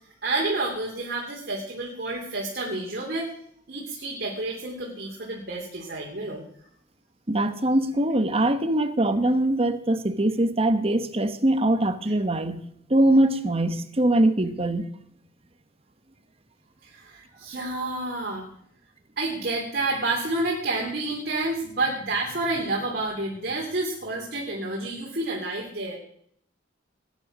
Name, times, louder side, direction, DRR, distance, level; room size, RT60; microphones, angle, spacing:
voice 1, 0.2-3.3 3.7-6.4 16.8-18.5 19.2-26.0, right 2 dB, 50° right, 3.0 m, -29 dB
voice 2, 7.3-12.6 12.9-14.9, right 1 dB, 30° right, 1.1 m, -22 dB
19.5 x 10.0 x 6.2 m
head